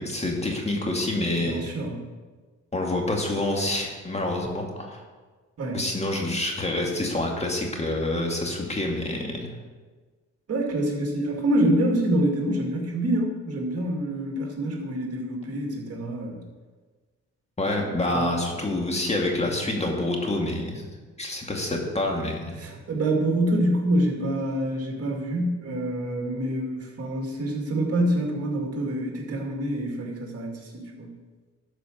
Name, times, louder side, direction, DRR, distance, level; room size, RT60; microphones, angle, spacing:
voice 1, 0.0-1.7 2.7-5.0 5.7-9.5 17.6-20.8 21.2-22.6, left 1 dB, 20° left, 1 dB, 2.1 m, -27 dB
voice 2, 1.4-2.0 5.6-5.8 10.5-16.4 18.1-18.3 22.6-31.1, right 1 dB, 50° right, 0 dB, 2.3 m, -26 dB
12.0 x 4.9 x 6.6 m, 1.4 s
cardioid pair, 90°, 30 cm